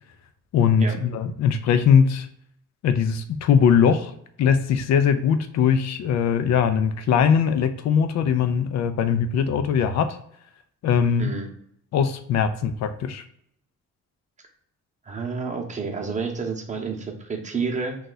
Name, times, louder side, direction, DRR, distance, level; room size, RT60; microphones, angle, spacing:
voice 1, 0.5-2.3 2.8-4.1 4.4-10.2 10.8-11.3 11.9-13.2, left 7 dB, 65° left, 9 dB, 0.5 m, -20 dB
voice 2, 15.0-18.0, right 5 dB, 25° right, 2 dB, 0.8 m, -29 dB
2.7 x 2.4 x 3.9 m, 0.69 s
cardioid pair, 90°, 30 cm